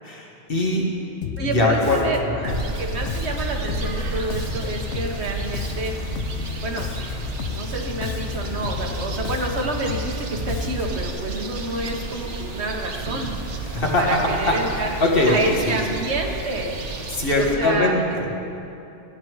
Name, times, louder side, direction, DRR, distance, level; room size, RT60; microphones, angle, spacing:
voice 1, 0.0-0.9 1.4-2.0 2.3-2.6 13.6-15.8 17.1-18.3, left 2 dB, 50° left, -1 dB, 1.7 m, -22 dB
Bass guitar, 1.2-11.1, left 7 dB, 75° left, 0.9 m, -32 dB
voice 2, 1.4-2.2 2.8-5.9 6.6-6.9 7.5-13.3 14.0-15.0 15.3-16.7 17.4-18.0, right 2 dB, 70° right, 2 dB, 1.4 m, -28 dB
sound 1, 2.5-17.6, right 3 dB, 85° right, 1.4 m, -32 dB
14.5 x 9.8 x 4.7 m, 2.7 s
omnidirectional pair, 1.2 m